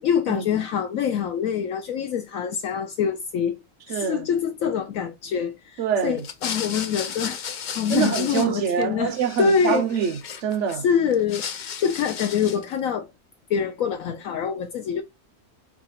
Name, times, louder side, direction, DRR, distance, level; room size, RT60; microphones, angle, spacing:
voice 1, 0.0-3.6 3.9-7.4 7.7-9.1 9.4-9.8 10.8-13.1 13.5-15.0, left 7 dB, 70° left, 1.0 m, -25 dB
voice 2, 3.9-4.3 5.8-6.3 7.9-10.8, right 7 dB, 65° right, 0.8 m, -25 dB
sound 1, 6.2-8.8 9.1-10.8 11.1-12.7, left 7 dB, 85° left, 0.4 m, -34 dB
4.6 x 2.4 x 4.1 m
omnidirectional pair, 1.6 m